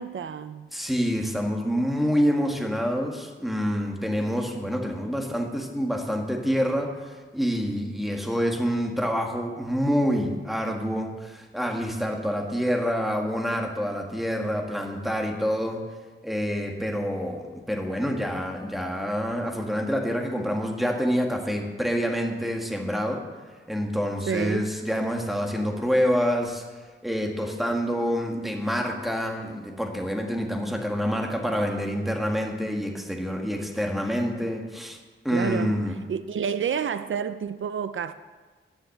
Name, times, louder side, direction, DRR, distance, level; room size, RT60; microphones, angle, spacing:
voice 1, 0.0-0.7 24.3-24.7 35.3-35.8 36.1-38.1, right 7 dB, 75° right, 0.5 m, -29 dB
voice 2, 0.7-15.8 16.2-23.2 23.7-26.6 27.0-35.0 35.3-36.0, equal, ahead, 1.7 m, -27 dB
10.5 x 9.2 x 7.9 m
wide cardioid pair, 130°, 21 cm